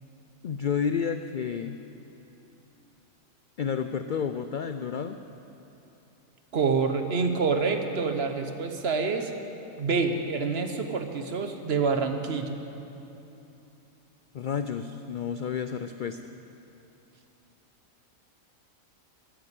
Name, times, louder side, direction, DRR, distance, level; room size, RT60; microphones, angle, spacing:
voice 1, 0.4-1.8 3.6-5.2 14.3-16.3, left 7 dB, 80° left, 9 dB, 0.4 m, -30 dB
voice 2, 6.5-9.3 9.8-12.6, right 4 dB, 50° right, 6 dB, 1.1 m, -27 dB
15.0 x 9.9 x 8.2 m, 2.9 s
omnidirectional pair, 1.4 m